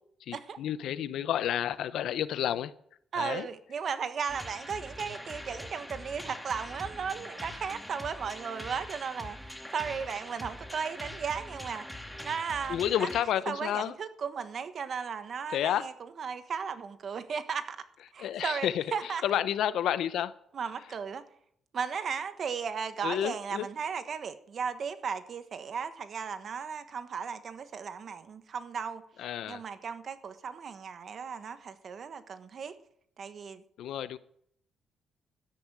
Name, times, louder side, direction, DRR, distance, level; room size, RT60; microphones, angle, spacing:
voice 1, 0.2-2.7 3.1-3.5 12.7-13.9 15.5-15.9 18.2-20.3 23.0-23.7 29.2-29.6 33.8-34.2, left 10 dB, 80° left, 0.7 m, -30 dB
voice 2, 3.1-9.4 9.7-13.1 13.5-17.9 18.1-19.2 20.5-21.2 21.7-29.0 29.5-32.8 33.2-33.6, right 6 dB, 55° right, 1.3 m, -36 dB
sound 1, 4.3-13.2, left 1 dB, 5° left, 2.1 m, -43 dB
13.0 x 10.0 x 6.2 m
cardioid pair, 90°, 0 cm